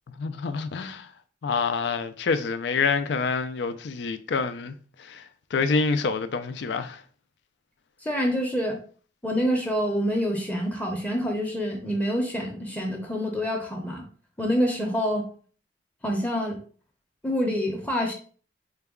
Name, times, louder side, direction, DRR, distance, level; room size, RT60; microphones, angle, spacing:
voice 1, 0.1-1.1 1.4-7.0, left 4 dB, 75° left, 0.4 m, -27 dB
voice 2, 8.0-8.8 9.2-14.1 14.4-15.3 16.0-16.6 17.2-18.1, equal, 10° left, 0.6 m, -26 dB
3.9 x 2.3 x 3.5 m
head